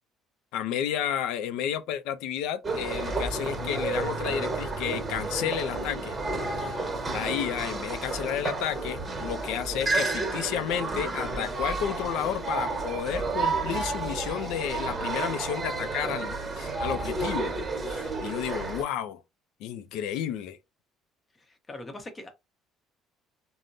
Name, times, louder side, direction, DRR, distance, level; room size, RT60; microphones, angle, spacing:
voice 1, 0.5-6.2 6.6-6.7 7.1-17.6 17.9-19.2 19.6-20.6, left 10 dB, 80° left, 0.4 m, -32 dB
sound 1, 2.6-18.8, right 3 dB, 20° right, 1.2 m, -31 dB
voice 2, 6.6-6.9 16.7-16.8 21.3-22.3, left 2 dB, 25° left, 0.8 m, -43 dB
3.5 x 2.0 x 2.6 m
cardioid pair, 100°, 0 cm